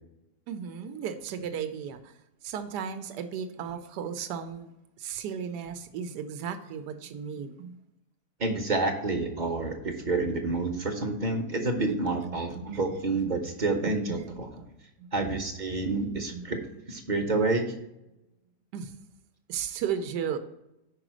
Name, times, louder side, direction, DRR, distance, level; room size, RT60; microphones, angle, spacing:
voice 1, 0.5-2.2 2.4-7.8 11.9-12.0 12.3-12.6 15.0-15.4 16.3-16.5 18.7-18.9 19.5-20.4, right 7 dB, 85° right, 9 dB, 1.2 m, -35 dB
voice 2, 8.4-14.5 15.1-16.6 16.9-17.7, right 3 dB, 40° right, 4 dB, 0.7 m, -28 dB
5.4 x 4.9 x 6.1 m, 0.88 s
omnidirectional pair, 1.8 m